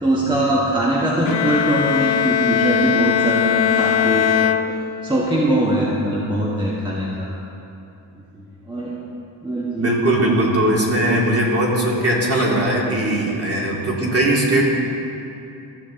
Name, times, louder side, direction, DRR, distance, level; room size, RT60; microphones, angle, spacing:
voice 1, 0.0-4.5 5.0-7.3 8.3-9.0 9.4-9.9 10.2-10.3, right 1 dB, 10° right, -5 dB, 1.6 m, -21 dB
Bowed string instrument, 1.3-5.3, left 9 dB, 80° left, 0.6 m, -20 dB
voice 2, 9.8-14.7, right 1 dB, 30° right, -4 dB, 2.6 m, -19 dB
15.0 x 6.5 x 3.8 m, 2.8 s
cardioid pair, 65°, 45 cm